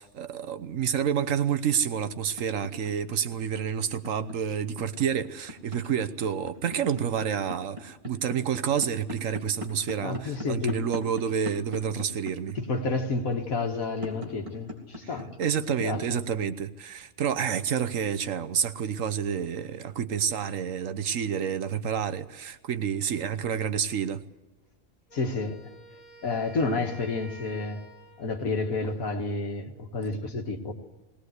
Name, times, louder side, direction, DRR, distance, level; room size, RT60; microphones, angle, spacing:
voice 1, 0.0-12.6 15.4-24.2, right 8 dB, 70° right, 1.3 m, -29 dB
sound 1, 2.4-16.0, left 1 dB, 25° right, 3.4 m, -39 dB
voice 2, 10.0-10.8 12.6-15.3 15.8-16.2 25.1-25.7 26.2-27.8 28.2-30.7, left 3 dB, 90° left, 2.2 m, -30 dB
Wind instrument woodwind instrument, 25.1-28.5, right 1 dB, 25° left, 1.8 m, -50 dB
19.0 x 19.0 x 8.1 m
omnidirectional pair, 1.4 m